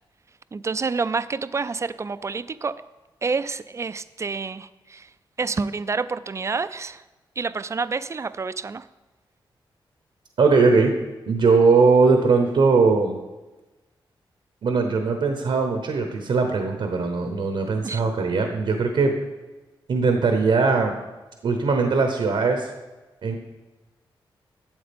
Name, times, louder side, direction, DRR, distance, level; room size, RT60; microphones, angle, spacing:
voice 1, 0.5-2.8 3.2-5.1 5.4-7.0 7.4-8.9 17.8-18.0, right 4 dB, 35° right, 15 dB, 0.4 m, -28 dB
voice 2, 10.4-10.9 11.3-13.2 14.6-19.1 19.9-20.9 21.4-22.7 23.2-23.4, right 4 dB, 75° right, 5 dB, 0.9 m, -20 dB
12.0 x 7.7 x 3.5 m, 1.1 s
cardioid pair, 70°, 9 cm